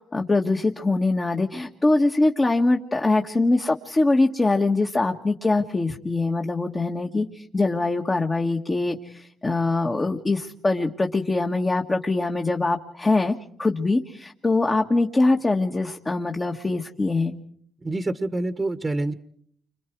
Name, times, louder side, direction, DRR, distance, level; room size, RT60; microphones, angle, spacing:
voice 1, 0.0-17.3, left 2 dB, 25° left, 3 dB, 1.7 m, -23 dB
voice 2, 17.8-19.1, right 2 dB, 20° right, 10 dB, 1.4 m, -26 dB
30.0 x 26.0 x 4.7 m, 0.63 s
cardioid pair, 90°, 0 cm